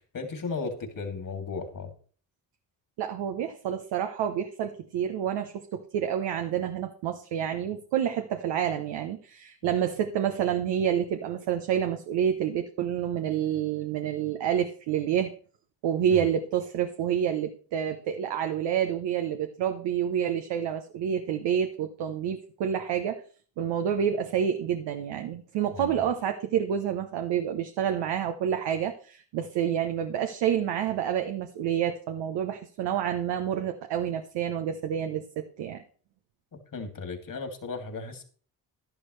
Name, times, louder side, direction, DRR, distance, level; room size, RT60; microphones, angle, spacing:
voice 1, 0.1-1.9 9.6-9.7 16.1-16.3 25.8-25.9 36.7-38.2, left 4 dB, 50° left, 4 dB, 2.9 m, -35 dB
voice 2, 3.0-15.3 15.8-23.2 23.6-35.8, right 9 dB, 85° right, 6 dB, 0.9 m, -28 dB
11.5 x 11.0 x 3.2 m, 0.43 s
supercardioid pair, 50°, 41 cm